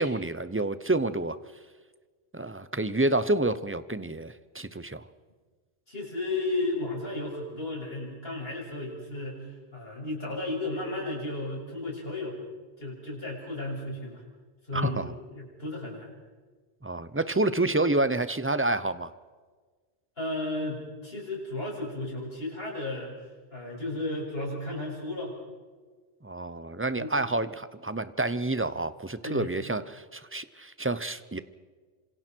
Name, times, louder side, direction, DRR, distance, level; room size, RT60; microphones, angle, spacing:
voice 1, 0.0-1.4 2.3-5.1 14.7-15.1 16.8-19.1 26.2-31.4, right 2 dB, 15° right, 13 dB, 0.8 m, -28 dB
voice 2, 5.9-12.4 12.8-14.2 14.7-16.1 20.2-23.1 23.5-25.3 27.0-27.2 29.2-29.6, left 2 dB, 70° left, -2 dB, 7.2 m, -34 dB
27.5 x 26.5 x 4.6 m, 1.4 s
omnidirectional pair, 1.1 m